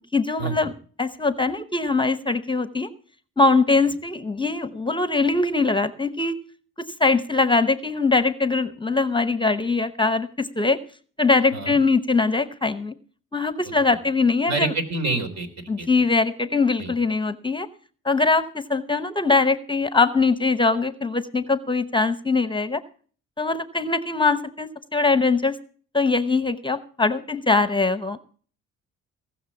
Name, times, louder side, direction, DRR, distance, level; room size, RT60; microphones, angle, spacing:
voice 1, 0.1-0.7 1.0-2.9 3.4-6.4 6.8-10.8 11.2-12.9 13.3-14.7 15.7-17.7 18.0-22.8 23.4-25.6 25.9-28.2, left 3 dB, 15° left, 13 dB, 0.8 m, -22 dB
voice 2, 14.5-16.1 16.8-16.9, right 3 dB, 60° right, 6 dB, 3.6 m, -27 dB
18.5 x 6.4 x 7.1 m, 0.43 s
cardioid pair, 90°, 30 cm